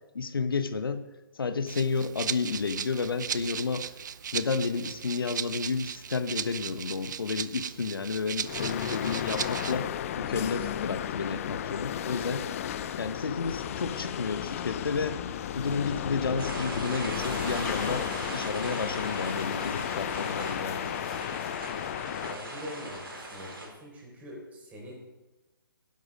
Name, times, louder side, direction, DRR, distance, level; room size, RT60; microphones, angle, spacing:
voice 1, 0.1-1.0 1.3-3.9 4.3-9.9 10.2-12.5 13.0-15.2 15.5-20.9, left 4 dB, 75° left, 11 dB, 1.0 m, -31 dB
Rattle (instrument), 1.7-9.8, right 8 dB, 55° right, 0.5 m, -37 dB
sound 1, 8.4-23.6, left 10 dB, 40° left, 0.6 m, -34 dB
sound 2, 16.4-23.7, right 2 dB, 80° right, 4.7 m, -39 dB
voice 2, 22.2-24.9, equal, 15° right, -3 dB, 4.4 m, -43 dB
11.5 x 11.0 x 5.1 m, 1.1 s
figure-of-eight pair, 140°, 12 cm